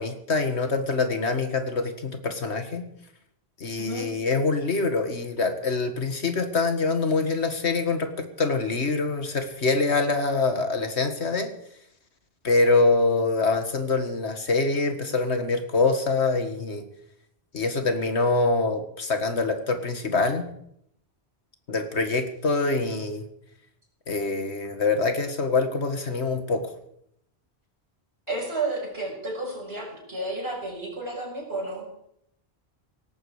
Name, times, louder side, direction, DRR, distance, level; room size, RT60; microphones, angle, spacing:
voice 1, 0.0-2.8 3.6-11.5 12.4-16.8 17.5-20.5 21.7-23.2 24.1-26.7, left 3 dB, 85° left, 7 dB, 2.1 m, -25 dB
voice 2, 28.3-31.8, right 2 dB, 70° right, -1 dB, 6.5 m, -31 dB
18.0 x 15.0 x 4.9 m, 0.73 s
omnidirectional pair, 1.1 m